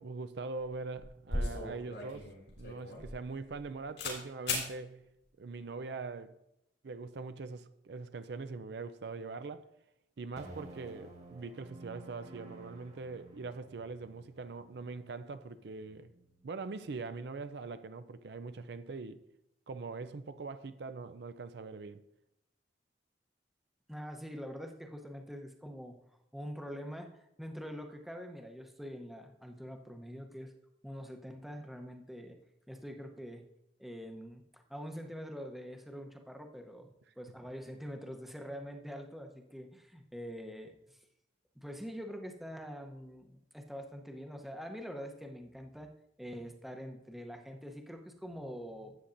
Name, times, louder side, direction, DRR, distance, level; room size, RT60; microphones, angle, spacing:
voice 1, 0.0-2.3 2.6-5.0 5.4-6.3 6.8-9.7 10.2-16.1 16.4-19.2 19.7-22.0, right 4 dB, 70° right, 0.5 m, -42 dB
sound 1, 0.6-0.7 1.0-3.6 4.0-4.2 4.5-4.7, left 2 dB, 80° left, 3.8 m, -36 dB
sound 2, 10.4-16.8, right 2 dB, 40° right, 1.6 m, -54 dB
voice 2, 23.9-26.0 26.3-30.5 30.8-32.4 32.7-33.4 33.8-36.9 37.2-41.0 41.6-45.9 46.2-49.0, equal, ahead, 0.8 m, -45 dB
13.0 x 8.3 x 2.6 m
head